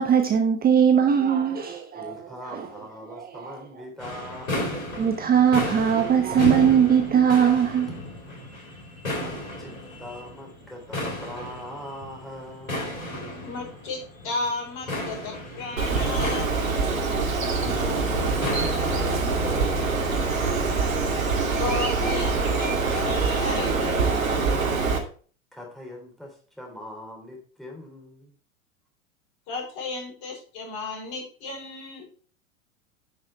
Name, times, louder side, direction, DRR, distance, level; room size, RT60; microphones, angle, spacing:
voice 1, 0.0-2.1 2.5-2.7 3.3-3.5 5.0-8.0, right 8 dB, 20° right, 1.1 m, -20 dB
voice 2, 1.9-5.0 9.2-9.7 10.0-12.8 17.7-20.3 25.5-28.4, left 1 dB, ahead, 3.6 m, -41 dB
sound 1, 4.0-19.7, left 1 dB, 80° left, 4.5 m, -34 dB
voice 3, 13.4-16.7 21.5-24.2 29.5-32.1, left 3 dB, 45° left, 5.8 m, -34 dB
Bird, 15.8-25.0, right 4 dB, 75° right, 2.6 m, -24 dB
10.0 x 6.3 x 4.4 m
figure-of-eight pair, 90°, 41 cm